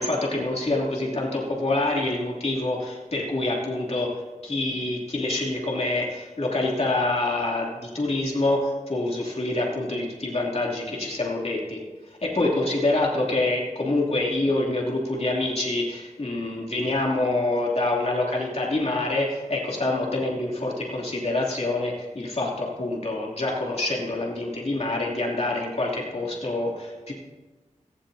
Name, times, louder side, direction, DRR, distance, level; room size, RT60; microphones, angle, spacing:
voice 1, 0.0-4.1 4.4-27.1, left 2 dB, 55° left, -3 dB, 2.8 m, -26 dB
17.0 x 15.5 x 2.8 m, 1.2 s
wide cardioid pair, 75°, 13 cm